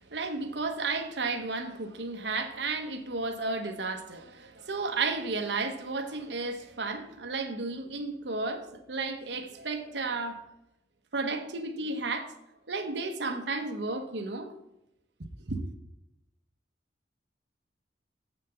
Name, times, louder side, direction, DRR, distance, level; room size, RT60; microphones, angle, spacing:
voice 1, 0.1-10.4 11.1-12.3 12.7-14.5 15.5-15.7, right 3 dB, 75° right, 1.0 m, -33 dB
7.8 x 5.8 x 5.6 m
head